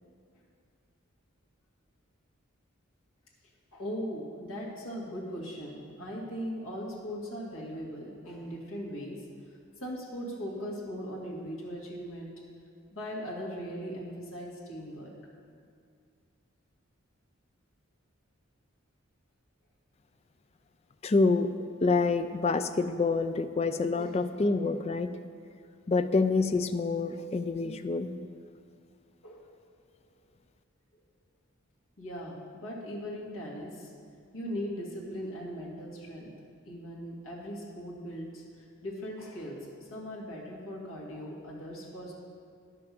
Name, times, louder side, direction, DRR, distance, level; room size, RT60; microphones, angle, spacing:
voice 1, 3.7-9.3 9.8-12.3 12.9-15.1 24.0-24.1 29.2-29.4 32.0-33.9 34.3-36.3 36.7-42.1, equal, 75° left, -5 dB, 2.2 m, -39 dB
voice 2, 21.0-21.5 21.8-25.1 25.9-28.1, left 3 dB, 30° left, 9 dB, 0.3 m, -27 dB
10.0 x 5.9 x 7.0 m, 2.3 s
head